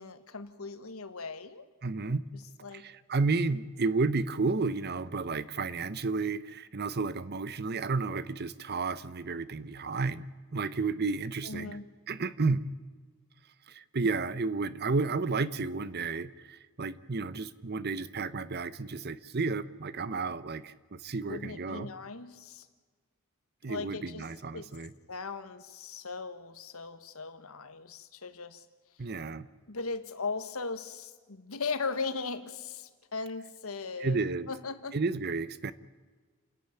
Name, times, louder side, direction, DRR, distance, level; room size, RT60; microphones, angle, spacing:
voice 1, 0.0-1.7 2.6-2.9 11.4-11.9 21.2-22.7 23.7-24.2 24.5-24.7 25.1-28.6 29.7-34.2 34.5-35.0, left 4 dB, 75° left, 11 dB, 1.4 m, -38 dB
voice 2, 1.8-2.2 2.7-10.3 10.5-11.8 12.1-12.6 13.7-21.9 23.6-24.9 29.0-29.5 34.0-34.5 34.9-35.7, right 4 dB, 50° right, 16 dB, 0.8 m, -32 dB
29.0 x 11.5 x 9.0 m, 1.4 s
head